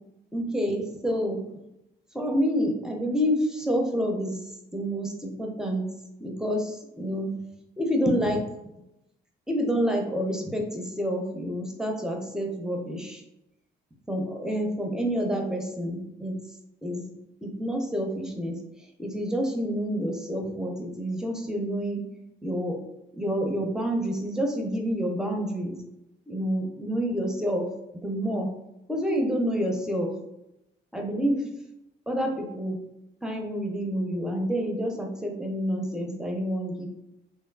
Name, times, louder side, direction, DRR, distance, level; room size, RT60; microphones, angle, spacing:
voice 1, 0.3-1.4 2.1-4.4 4.7-5.9 6.2-7.3 7.8-8.4 9.5-13.2 14.1-16.4 16.8-17.0 17.4-18.6 19.0-22.0 22.4-22.8 23.1-25.8 26.3-27.7 28.0-28.5 28.9-30.1 30.9-31.4 32.1-32.8 33.2-36.9, equal, 5° right, 1 dB, 0.4 m, -28 dB
2.9 x 2.3 x 2.2 m, 0.88 s
cardioid pair, 90°, 20 cm